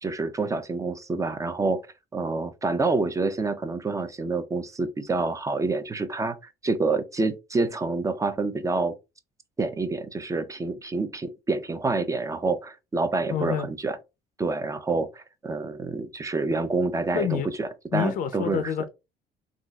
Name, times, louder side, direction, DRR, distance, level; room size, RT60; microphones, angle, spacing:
voice 1, 0.0-1.8 2.1-6.4 6.6-8.9 9.6-14.0 14.4-18.7, right 3 dB, 20° right, 0.4 m, -27 dB
voice 2, 13.3-13.7 17.1-17.5 17.9-18.9, left 9 dB, 55° left, 0.4 m, -27 dB
3.7 x 2.3 x 2.2 m
cardioid pair, 110°, 17 cm